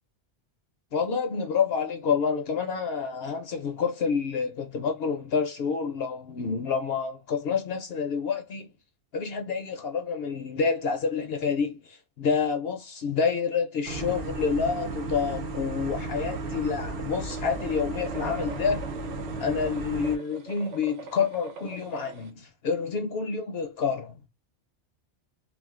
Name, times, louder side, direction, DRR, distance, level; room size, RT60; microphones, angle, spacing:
voice 1, 0.9-8.7 9.1-18.9 19.4-24.2, left 5 dB, 65° left, 0.7 m, -28 dB
sound 1, 13.9-20.2, right 3 dB, 60° right, 0.7 m, -34 dB
sound 2, 17.2-22.3, right 4 dB, 85° right, 1.0 m, -43 dB
2.5 x 2.4 x 3.5 m
omnidirectional pair, 1.2 m